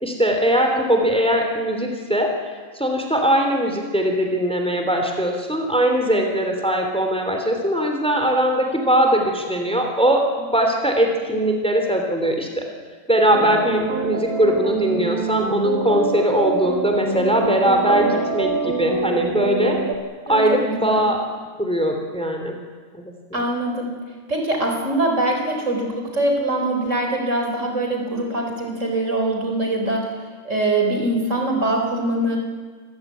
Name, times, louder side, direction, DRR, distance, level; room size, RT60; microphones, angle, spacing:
voice 1, 0.0-12.6 13.1-19.8 20.3-21.2 21.6-22.6 22.9-23.4, right 1 dB, 5° left, 3 dB, 3.1 m, -20 dB
sound 1, 13.3-19.9, right 3 dB, 90° right, 2.6 m, -25 dB
voice 2, 20.3-21.1 23.3-24.0 24.3-30.1 30.4-32.4, right 1 dB, 55° right, 2 dB, 4.8 m, -23 dB
27.0 x 15.0 x 9.3 m, 1.5 s
omnidirectional pair, 1.5 m